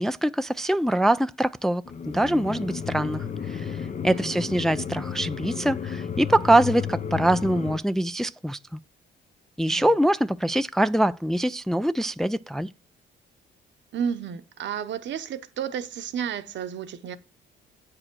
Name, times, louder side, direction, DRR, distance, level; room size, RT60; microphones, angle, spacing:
voice 1, 0.0-8.6 9.6-12.7, right 1 dB, ahead, 0.4 m, -24 dB
sound 1, 1.9-7.8, left 7 dB, 35° left, 0.7 m, -33 dB
voice 2, 4.0-4.6 9.6-9.9 13.9-17.2, right 8 dB, 65° right, 1.0 m, -32 dB
8.6 x 4.8 x 6.2 m
cardioid pair, 90°, 20 cm